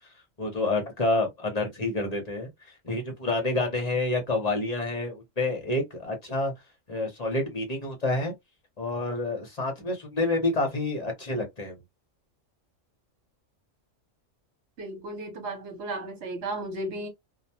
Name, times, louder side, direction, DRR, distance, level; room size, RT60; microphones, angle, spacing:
voice 1, 0.4-2.5 2.8-6.5 6.9-8.3 8.8-11.8, left 2 dB, 35° left, 0.8 m, -28 dB
voice 2, 14.8-17.1, right 1 dB, 65° right, 1.2 m, -34 dB
2.3 x 2.2 x 2.7 m
omnidirectional pair, 1.3 m